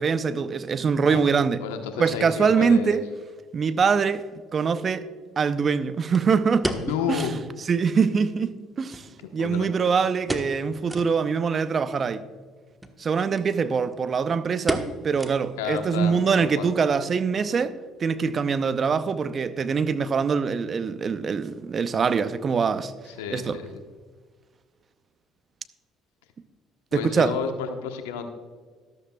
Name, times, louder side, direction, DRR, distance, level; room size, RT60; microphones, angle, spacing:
voice 1, 0.0-1.6 2.0-3.0 3.5-4.2 4.5-5.0 5.4-6.7 7.1-7.3 7.7-9.0 9.3-12.2 13.0-17.7 18.0-22.9 23.3-23.6 26.9-27.3, right 5 dB, 40° right, 0.7 m, -23 dB
voice 2, 1.6-3.0 6.7-7.3 9.1-9.7 15.6-16.7 23.1-23.8 26.9-28.3, left 7 dB, 80° left, 1.1 m, -31 dB
sound 1, 6.1-7.5 7.8-7.9 8.2-8.3 8.9-9.8 10.2-10.6 10.9-11.1 11.6-11.7 12.7-13.0 13.4-13.5 13.8-14.1 14.7-15.7 16.0-16.1 16.7-17.0 17.3-17.4, right 1 dB, 10° right, 1.2 m, -32 dB
13.0 x 12.5 x 2.3 m
hypercardioid pair, 60°, 0 cm